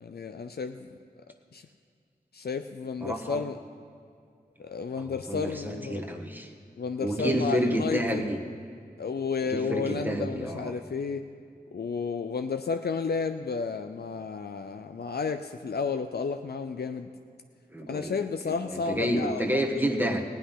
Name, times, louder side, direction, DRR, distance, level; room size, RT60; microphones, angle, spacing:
voice 1, 0.0-0.9 1.5-1.6 2.3-3.6 4.6-6.1 6.8-8.3 9.0-11.3 11.7-17.1 17.9-19.6, left 5 dB, 80° left, 7 dB, 0.5 m, -32 dB
voice 2, 3.0-3.4 5.0-6.5 7.0-8.4 9.5-10.8 17.7-18.1 18.5-20.2, equal, 10° right, 1 dB, 1.3 m, -29 dB
16.5 x 5.8 x 10.0 m, 2.2 s
wide cardioid pair, 45°, 16 cm